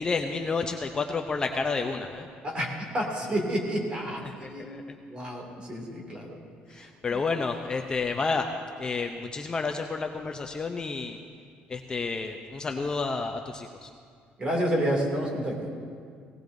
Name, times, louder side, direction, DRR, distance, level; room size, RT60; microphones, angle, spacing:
voice 1, 0.0-2.3 4.2-4.8 6.7-8.5 8.8-11.2 11.7-13.9, left 4 dB, 20° left, 4 dB, 0.5 m, -30 dB
voice 2, 2.4-4.6 5.1-6.4 6.8-7.2 14.4-15.7, equal, 30° right, -1 dB, 2.5 m, -30 dB
18.5 x 18.0 x 2.6 m, 2.1 s
cardioid pair, 160°, 4 cm